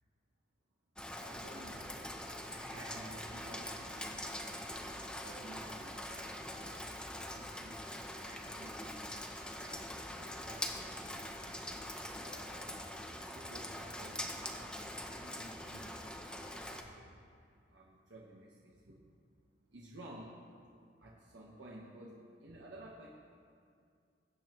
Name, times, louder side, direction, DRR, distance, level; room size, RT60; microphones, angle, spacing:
Rain, 1.0-16.8, left 1 dB, 5° left, 0.6 m, -43 dB
voice 1, 1.1-2.1 2.5-4.4 5.0-6.5 7.3-11.6 12.1-17.2 17.7-19.0 19.7-20.5 21.0-23.1, right 1 dB, 80° right, -4 dB, 1.2 m, -54 dB
20.0 x 8.6 x 3.0 m, 2.3 s
head